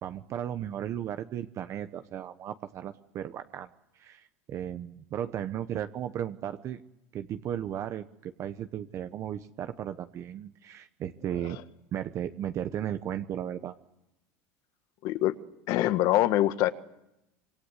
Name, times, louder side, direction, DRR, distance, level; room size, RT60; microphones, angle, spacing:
voice 1, 0.0-3.7 3.9-6.8 7.1-11.6 11.9-13.7, right 10 dB, 40° right, 10 dB, 1.0 m, -35 dB
voice 2, 15.0-15.3 15.7-16.7, left 14 dB, 55° left, 11 dB, 1.6 m, -24 dB
26.0 x 23.5 x 8.2 m, 0.89 s
supercardioid pair, 135°, 8 cm